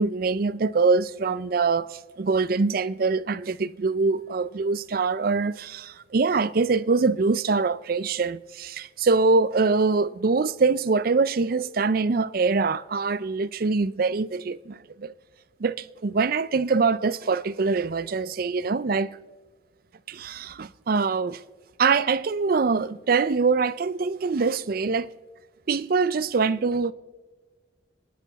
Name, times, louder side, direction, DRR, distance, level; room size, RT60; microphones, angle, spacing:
voice 1, 0.0-15.1 15.6-19.1 20.1-21.4 21.8-25.1 25.7-26.9, right 4 dB, 50° right, 0.5 m, -24 dB
29.5 x 10.5 x 4.1 m
head